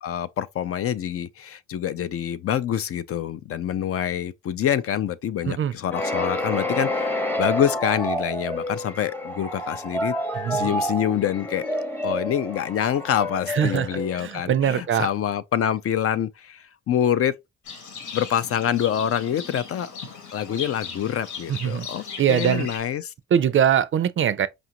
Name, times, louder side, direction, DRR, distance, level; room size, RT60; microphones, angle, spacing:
voice 1, 0.0-10.1 10.5-11.7 12.0-17.3 18.1-19.9 20.3-23.1, left 9 dB, 50° left, 0.4 m, -26 dB
sound 1, 5.9-14.7, equal, 5° left, 0.7 m, -29 dB
voice 2, 10.4-10.7 13.5-15.1 21.5-21.9 22.2-22.7 23.3-24.5, right 9 dB, 45° right, 0.4 m, -22 dB
Livestock farm animals working animals, 17.7-22.8, left 5 dB, 85° left, 1.2 m, -38 dB
5.0 x 2.5 x 2.8 m
cardioid pair, 90°, 30 cm